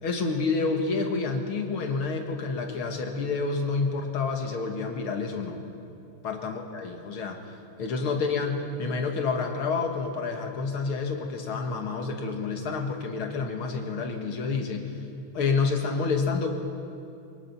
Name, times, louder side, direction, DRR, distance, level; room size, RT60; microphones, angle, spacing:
voice 1, 0.0-5.6 6.2-7.4 7.8-15.0 15.3-16.5, left 4 dB, 75° left, 3 dB, 2.6 m, -29 dB
23.5 x 21.0 x 6.0 m, 2.5 s
omnidirectional pair, 2.4 m